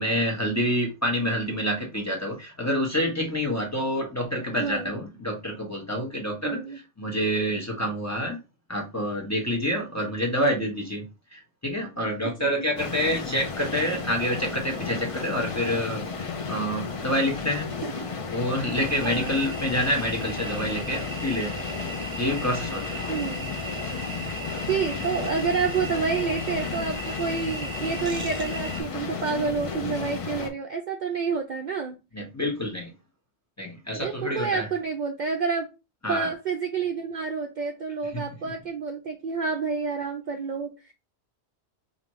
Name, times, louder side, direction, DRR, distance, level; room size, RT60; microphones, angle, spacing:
voice 1, 0.0-6.6 7.0-8.4 8.7-11.0 11.3-17.7 18.3-21.6 22.2-23.2 24.9-25.0 32.1-32.9 33.6-34.7 36.0-36.3 38.1-38.2, equal, 15° left, -1 dB, 1.1 m, -27 dB
voice 2, 4.6-4.9 6.4-6.8 12.2-12.7 17.8-17.9 19.0-19.3 23.1-23.5 24.7-32.0 34.0-35.7 36.1-40.7, right 5 dB, 55° right, 4 dB, 0.6 m, -29 dB
sound 1, 12.8-30.5, left 4 dB, 40° left, 0.5 m, -33 dB
sound 2, 18.7-28.8, equal, 25° right, 1.4 m, -37 dB
5.0 x 2.7 x 3.0 m, 0.27 s
omnidirectional pair, 1.1 m